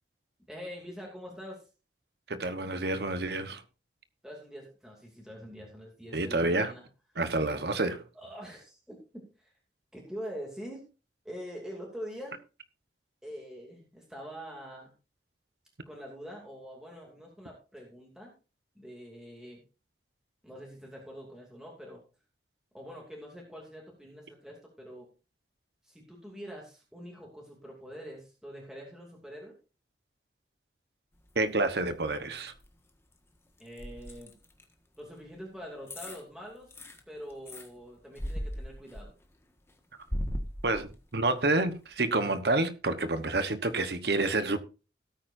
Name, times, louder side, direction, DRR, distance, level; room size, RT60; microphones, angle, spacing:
voice 1, 0.5-1.6 4.2-6.8 8.1-9.5 9.9-10.8 11.2-12.4 13.2-14.9 15.9-18.3 18.7-19.6 20.4-22.0 22.7-25.1 25.8-29.5 33.6-34.3 35.0-36.7 37.1-39.1, equal, 5° right, 2.7 m, -44 dB
voice 2, 2.3-3.6 6.1-6.7 7.2-8.0 31.4-32.5 40.6-44.6, right 2 dB, 65° right, 1.1 m, -28 dB
sound 1, 31.1-32.1 32.4-34.6 35.3-35.4 35.9-36.2 36.6-37.7 38.1-39.3 39.7-41.2 41.7-41.8, equal, 15° left, 1.5 m, -38 dB
17.5 x 8.9 x 2.6 m
head